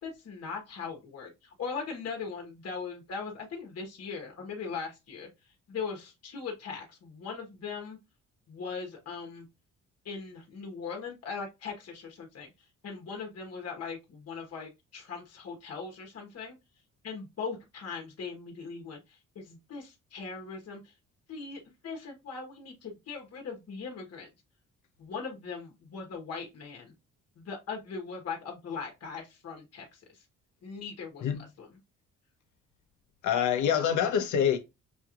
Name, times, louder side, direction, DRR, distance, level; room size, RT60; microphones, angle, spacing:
voice 1, 0.0-5.3 5.7-8.0 8.5-9.5 10.0-12.5 12.8-16.6 17.0-20.9 21.3-24.3 25.0-26.9 27.4-30.2 30.6-31.3 31.6-31.7, left 5 dB, 55° left, 1.3 m, -40 dB
voice 2, 33.2-34.6, left 8 dB, 75° left, 1.0 m, -26 dB
6.1 x 3.0 x 2.5 m
cardioid pair, 90°, 30 cm